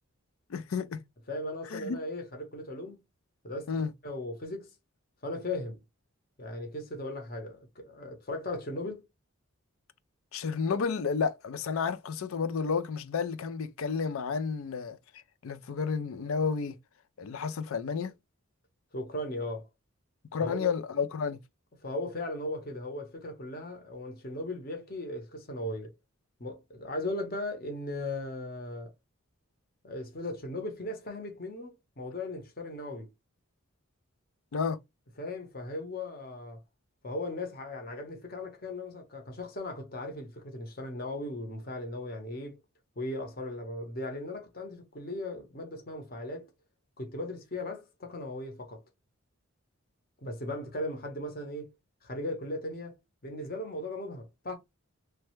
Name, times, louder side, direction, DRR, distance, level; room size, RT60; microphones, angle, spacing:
voice 1, 0.5-1.0 1.7-2.0 3.7-3.9 10.3-15.0 15.4-16.8 17.2-18.1 20.3-21.4 34.5-34.8, left 5 dB, 70° left, 0.4 m, -31 dB
voice 2, 1.3-3.0 3.4-3.7 4.0-4.7 5.2-5.8 6.4-9.1 18.9-19.7 20.4-20.7 21.8-25.9 26.4-28.9 29.8-33.1 35.2-36.6 37.0-42.5 43.0-46.5 47.0-48.8 50.2-51.7 52.0-53.0 53.2-54.5, left 1 dB, 40° left, 0.9 m, -37 dB
3.2 x 2.2 x 3.0 m
head